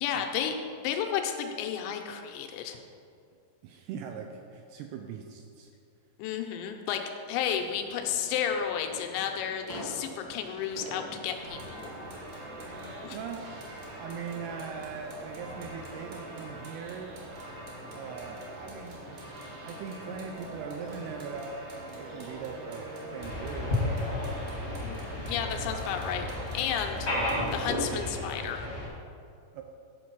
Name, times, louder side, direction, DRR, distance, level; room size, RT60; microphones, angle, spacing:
voice 1, 0.0-2.8 6.2-7.0 7.3-11.9 13.0-13.2 24.8-26.3 26.5-28.6, left 8 dB, 90° left, 4 dB, 2.9 m, -32 dB
voice 2, 3.6-5.7 13.1-13.5 14.0-17.2 17.9-19.0 19.6-21.6 22.0-22.9 23.1-23.8 29.5-29.6, right 6 dB, 85° right, 3 dB, 2.4 m, -40 dB
New Year fireworks, 7.5-12.9, equal, 25° right, 0.4 m, -46 dB
sound 1, 11.3-27.8, right 1 dB, 60° right, 2.5 m, -42 dB
sound 2, 23.2-28.9, left 1 dB, 50° left, 0.7 m, -33 dB
11.0 x 4.6 x 5.9 m, 2.4 s
omnidirectional pair, 5.1 m